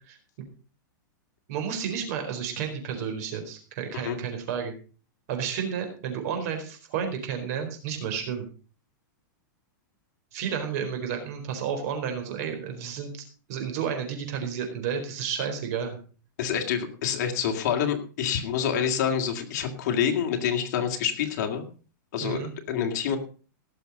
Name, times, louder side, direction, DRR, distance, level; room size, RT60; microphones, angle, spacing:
voice 1, 1.5-4.7 5.3-8.4 10.3-13.2 13.5-16.0 22.2-22.5, right 7 dB, 50° right, 5 dB, 4.3 m, -31 dB
voice 2, 16.4-21.7 22.1-22.4 22.7-23.2, left 8 dB, 55° left, 5 dB, 2.3 m, -27 dB
17.5 x 6.8 x 5.3 m, 0.38 s
supercardioid pair, 155°, 11 cm